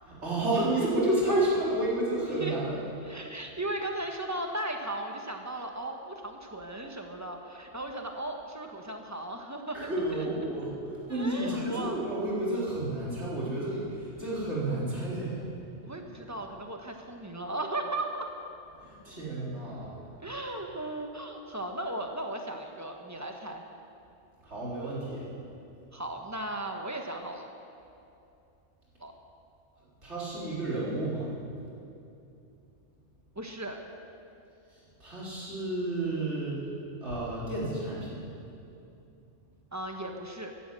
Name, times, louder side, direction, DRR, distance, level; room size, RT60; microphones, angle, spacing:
voice 1, 0.0-2.8 9.7-15.4 18.8-20.0 24.4-25.3 30.0-31.3 34.7-36.6 37.0-38.2, right 1 dB, 60° right, -7 dB, 4.1 m, -31 dB
voice 2, 3.0-10.3 11.1-12.0 15.8-18.3 20.2-23.6 25.9-27.5 29.0-29.1 30.4-30.6 33.3-33.8 39.7-40.5, right 1 dB, 15° right, 3 dB, 1.3 m, -36 dB
14.5 x 11.0 x 7.7 m, 2.7 s
omnidirectional pair, 1.3 m